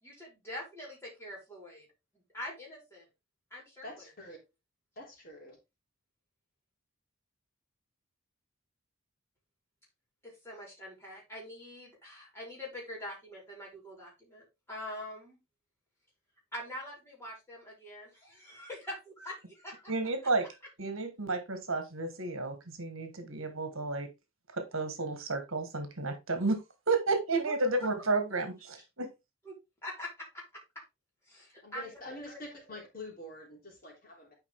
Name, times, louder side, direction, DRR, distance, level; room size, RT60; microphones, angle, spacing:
voice 1, 0.0-1.9 2.3-3.1 3.5-4.1 10.2-15.4 16.5-19.9 27.4-27.5 29.4-29.5 29.8-30.4 30.7-30.8 31.3-32.1, left 1 dB, 10° left, 4.7 m, -44 dB
voice 2, 3.8-4.4 4.9-5.6 31.6-34.3, left 1 dB, 40° left, 3.2 m, -46 dB
voice 3, 19.9-20.4 20.8-24.1 24.5-26.6 26.9-29.1, right 3 dB, 65° right, 1.6 m, -32 dB
9.8 x 5.1 x 3.6 m
head